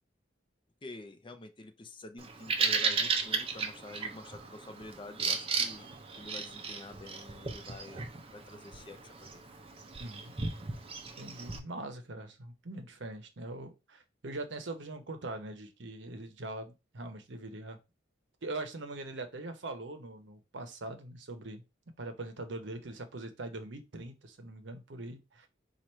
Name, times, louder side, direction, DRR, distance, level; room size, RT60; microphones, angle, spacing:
voice 1, 0.8-9.4, left 2 dB, 25° left, 0.5 m, -48 dB
Bird vocalization bird call bird song, 2.2-11.6, right 4 dB, 30° right, 0.5 m, -35 dB
voice 2, 10.0-10.3 11.2-17.8 18.4-21.6 22.0-25.5, right 2 dB, 70° right, 0.8 m, -42 dB
4.6 x 2.5 x 4.2 m
head